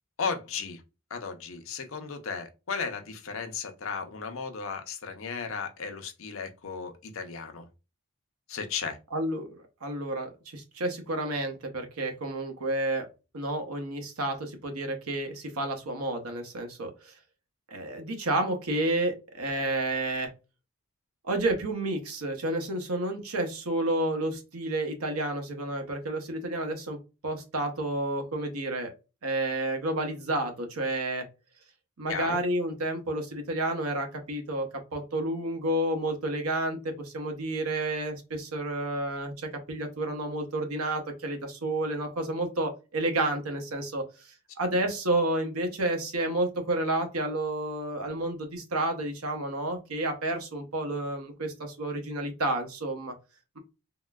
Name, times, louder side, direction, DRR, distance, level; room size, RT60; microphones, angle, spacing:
voice 1, 0.2-0.8 1.1-7.7 8.5-9.0 32.1-32.4, left 5 dB, 65° left, 0.6 m, -35 dB
voice 2, 9.1-13.1 13.3-17.1 17.7-20.3 21.2-27.0 27.2-28.9 29.2-31.2 32.0-53.1, right 1 dB, 85° right, 0.9 m, -30 dB
3.7 x 2.2 x 2.3 m
head